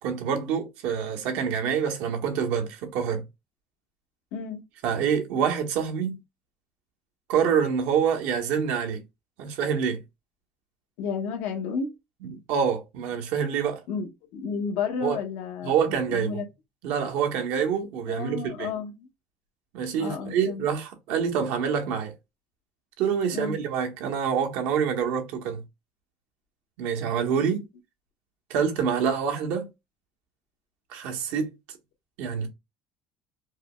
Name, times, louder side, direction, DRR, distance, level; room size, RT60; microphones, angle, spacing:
voice 1, 0.0-3.2 4.8-6.2 7.3-9.0 9.4-10.0 12.2-13.8 15.0-15.2 15.6-16.4 16.8-18.7 19.7-22.1 23.0-25.6 26.8-27.6 28.5-29.7 30.9-31.5 32.2-32.5, right 7 dB, 70° right, 1.0 m, -26 dB
voice 2, 4.3-4.6 11.0-11.9 13.9-16.4 18.1-19.1 20.0-20.6 23.3-23.6, left 5 dB, 70° left, 0.9 m, -32 dB
4.7 x 2.0 x 2.3 m
cardioid pair, 150°, 3 cm